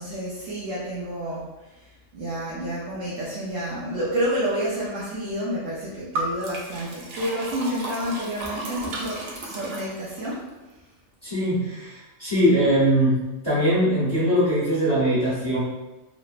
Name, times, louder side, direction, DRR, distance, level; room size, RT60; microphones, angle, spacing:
voice 1, 0.0-1.5 1.8-10.4, equal, 80° right, -9 dB, 1.1 m, -29 dB
Liquid, 6.1-10.3, right 1 dB, 65° right, 0.7 m, -33 dB
voice 2, 11.2-13.1 13.4-15.6, equal, 25° left, -13 dB, 1.0 m, -21 dB
3.1 x 2.0 x 2.4 m, 1.1 s
omnidirectional pair, 1.3 m